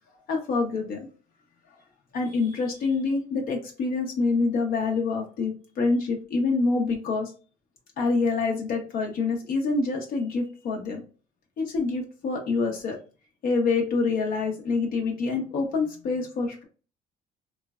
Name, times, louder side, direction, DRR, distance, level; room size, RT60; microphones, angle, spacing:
voice 1, 0.3-1.1 2.1-7.3 8.0-11.0 11.6-13.0 13.4-16.6, left 4 dB, 60° left, 1 dB, 0.7 m, -26 dB
3.1 x 2.1 x 2.3 m, 0.35 s
cardioid pair, 110°, 17 cm